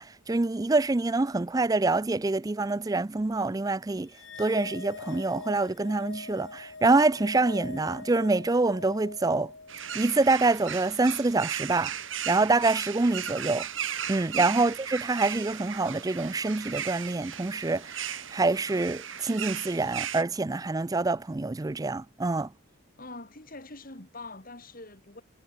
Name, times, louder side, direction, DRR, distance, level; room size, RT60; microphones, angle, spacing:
voice 1, 0.0-4.1 4.4-9.5 9.9-11.9 12.3-13.7 14.1-22.5, right 3 dB, 15° right, 0.4 m, -26 dB
sound 1, 4.1-10.7, left 3 dB, 65° left, 3.2 m, -43 dB
sound 2, 9.7-20.2, right 9 dB, 70° right, 7.5 m, -36 dB
voice 2, 14.3-14.6 23.0-25.2, left 2 dB, 45° left, 3.5 m, -44 dB
head